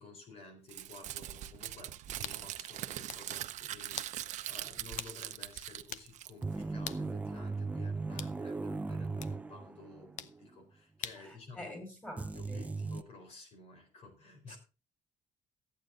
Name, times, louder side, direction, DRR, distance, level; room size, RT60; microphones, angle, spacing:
voice 1, 0.0-11.8 12.2-14.6, left 3 dB, 55° left, 4.1 m, -53 dB
Crumpling crinkling, 0.7-6.6, right 13 dB, 70° right, 0.8 m, -42 dB
sound 1, 2.2-2.4 2.9-3.3 4.0-4.2 5.0-5.2 5.5-5.6 5.9-6.1 6.8-7.1 8.2-8.4 9.2-9.4 10.2-10.4 11.0-11.3, left 10 dB, 80° left, 0.8 m, -42 dB
sound 2, 6.4-10.2 10.4-10.5 12.2-13.0, right 3 dB, 10° right, 0.5 m, -37 dB
voice 2, 11.2-12.7 14.5-14.6, left 1 dB, 10° left, 5.4 m, -47 dB
14.0 x 9.1 x 3.9 m
cardioid pair, 150°, 13 cm